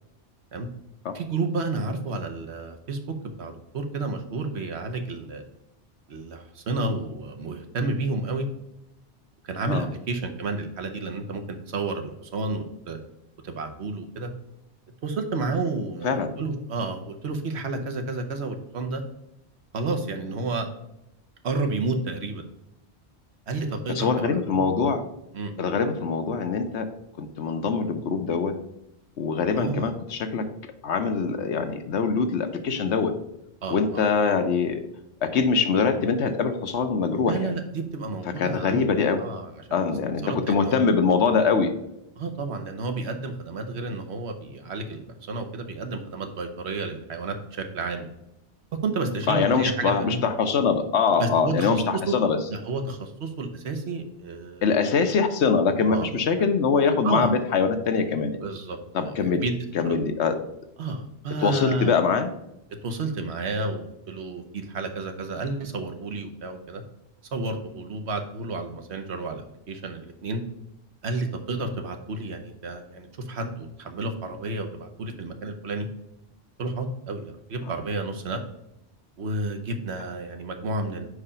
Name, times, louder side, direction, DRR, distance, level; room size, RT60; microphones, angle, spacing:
voice 1, 1.1-3.0 3.4-5.4 6.1-8.5 9.4-13.0 13.4-14.3 15.0-19.0 19.7-20.7 21.4-22.4 23.5-24.7 25.3-25.5 29.5-29.9 33.6-34.0 37.2-39.9 40.2-40.8 42.2-48.1 48.8-50.2 51.2-52.2 52.5-54.7 55.9-56.1 56.4-56.5 57.0-57.3 58.4-58.8 59.0-59.6 59.8-60.0 60.8-62.0 62.8-66.8 67.3-70.4 71.0-75.9 76.6-78.4 79.2-81.1, right 3 dB, 75° right, 5 dB, 1.2 m, -31 dB
voice 2, 24.0-25.0 25.6-26.9 27.2-28.5 29.2-30.5 30.8-33.1 33.7-34.8 35.2-37.5 38.4-39.2 39.7-41.7 49.3-52.4 54.6-58.4 58.9-59.4 59.7-60.4 61.4-62.3, left 5 dB, 85° left, 7 dB, 1.1 m, -23 dB
4.9 x 4.8 x 5.5 m, 0.85 s
omnidirectional pair, 1.1 m